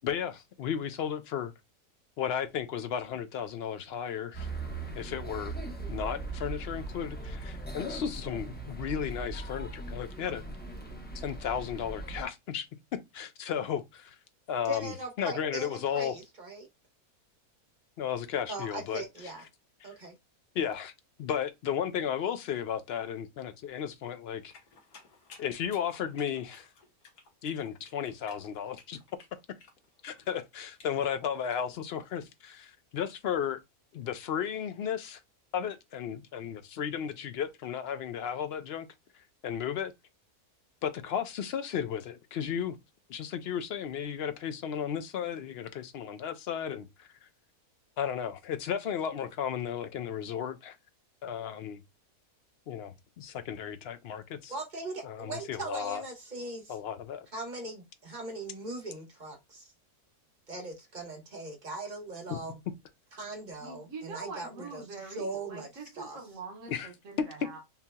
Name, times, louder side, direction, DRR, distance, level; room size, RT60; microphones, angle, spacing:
voice 1, 0.0-1.5 2.2-4.5 4.9-5.6 5.9-10.4 11.1-12.7 13.1-14.2 14.5-16.1 18.0-19.0 19.8-19.9 20.5-20.9 21.2-24.5 25.4-26.7 27.4-29.0 30.0-33.6 33.9-35.2 35.5-38.9 39.4-39.9 40.8-42.8 43.1-47.1 48.0-50.8 51.2-51.8 52.7-54.5 55.0-56.0 56.7-57.3 62.3-62.4 66.7-66.9, left 8 dB, 70° left, 0.6 m, -34 dB
sound 1, 4.3-12.2, right 2 dB, 10° left, 0.6 m, -39 dB
voice 2, 14.6-16.7 18.5-19.4 19.8-20.1 54.5-56.8 57.3-59.7 60.5-62.6 63.1-64.8 65.2-65.7 66.0-66.2, right 2 dB, 35° right, 1.2 m, -39 dB
sound 2, 24.5-31.7, left 4 dB, 85° left, 1.6 m, -56 dB
voice 3, 63.6-67.6, right 4 dB, 60° right, 1.5 m, -44 dB
5.6 x 2.8 x 2.2 m
omnidirectional pair, 1.6 m